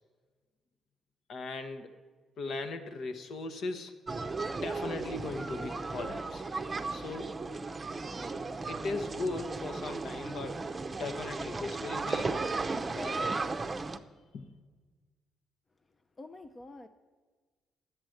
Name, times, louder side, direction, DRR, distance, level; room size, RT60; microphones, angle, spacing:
voice 1, 1.3-2.0 2.4-4.0 4.6-6.4 6.9-7.4 8.7-12.5 12.8-13.5 14.3-14.5, left 3 dB, 65° left, 8 dB, 1.1 m, -38 dB
sound 1, 4.1-14.0, right 3 dB, 25° right, 0.6 m, -35 dB
voice 2, 15.7-16.9, left 2 dB, 30° left, 9 dB, 0.6 m, -49 dB
10.0 x 8.1 x 7.9 m, 1.4 s
cardioid pair, 90°, 0 cm